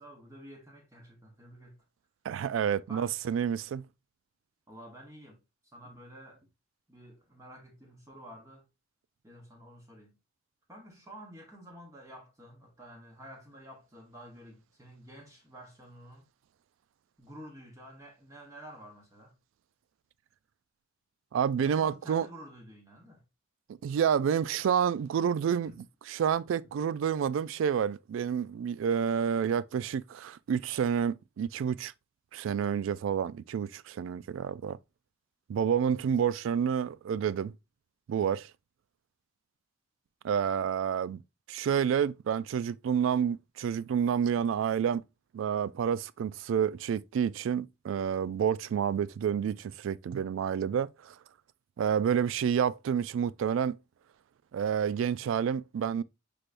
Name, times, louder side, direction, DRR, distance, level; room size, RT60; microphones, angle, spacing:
voice 1, 0.0-1.9 2.9-3.1 4.7-6.5 6.9-8.6 9.2-10.2 10.7-16.3 17.2-19.3 21.6-23.2 25.6-25.8, right 1 dB, 15° right, 1.0 m, -50 dB
voice 2, 2.3-3.9 21.3-22.3 23.8-25.7 26.1-31.9 32.3-34.8 35.5-37.5 38.1-38.5 40.2-41.2 41.5-45.0 45.3-51.1 51.8-53.8 54.5-56.0, right 8 dB, 75° right, 0.3 m, -29 dB
6.0 x 3.3 x 2.5 m
head